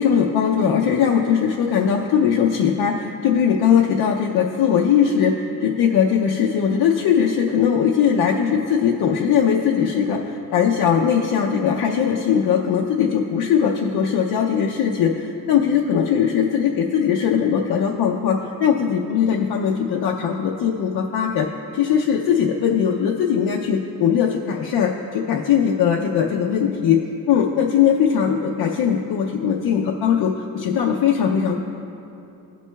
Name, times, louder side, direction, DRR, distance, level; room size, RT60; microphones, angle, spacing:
voice 1, 0.0-21.5 21.7-27.0 27.3-31.6, left 7 dB, 75° left, 0 dB, 0.6 m, -20 dB
15.5 x 6.0 x 2.3 m, 2.8 s
wide cardioid pair, 165°, 38 cm